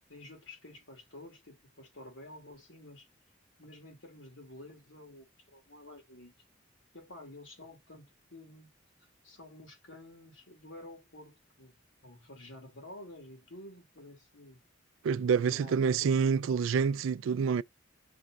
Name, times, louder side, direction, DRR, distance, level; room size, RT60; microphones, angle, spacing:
voice 1, 0.1-3.1 3.6-6.3 6.9-8.7 9.2-14.6 15.0-16.7, left 1 dB, 80° left, 2.4 m, -51 dB
voice 2, 15.0-17.6, right 6 dB, 90° right, 0.3 m, -27 dB
5.4 x 3.6 x 2.4 m
head